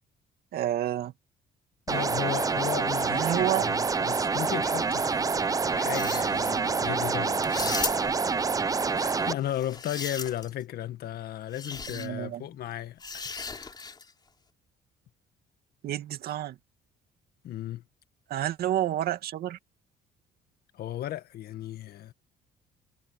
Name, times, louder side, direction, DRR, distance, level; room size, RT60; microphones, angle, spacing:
voice 1, 0.5-1.1 3.1-3.6 11.9-12.4 15.8-16.6 18.3-19.6, right 12 dB, 65° right, 2.2 m, -29 dB
voice 2, 1.9-5.3 5.7-7.8 8.1-8.4 8.9-13.7 17.4-17.8 20.7-22.1, left 12 dB, 65° left, 1.8 m, -35 dB
sound 1, 1.9-9.3, right 4 dB, 20° right, 0.6 m, -27 dB
sound 2, 5.8-6.5 7.4-8.3 9.4-10.6 11.5-12.1 13.0-14.1, left 4 dB, 25° left, 3.8 m, -36 dB
cardioid pair, 110°, 17 cm